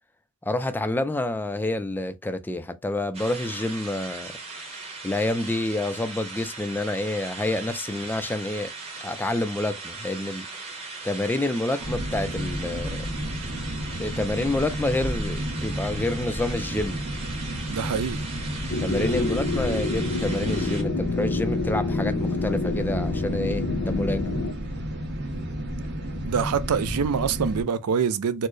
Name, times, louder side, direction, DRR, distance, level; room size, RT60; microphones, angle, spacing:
voice 1, 0.5-4.3 5.0-8.7 9.0-10.5 11.0-13.1 14.0-17.1 18.8-24.2, left 2 dB, 10° left, 0.3 m, -28 dB
sound 1, 3.1-20.8, right 3 dB, 25° right, 1.1 m, -39 dB
sound 2, 11.8-27.6, equal, 50° right, 1.1 m, -32 dB
voice 2, 17.7-18.3 26.3-28.5, right 6 dB, 85° right, 0.5 m, -25 dB
sound 3, 18.7-24.5, left 3 dB, 65° left, 0.6 m, -28 dB
4.3 x 2.0 x 3.1 m
head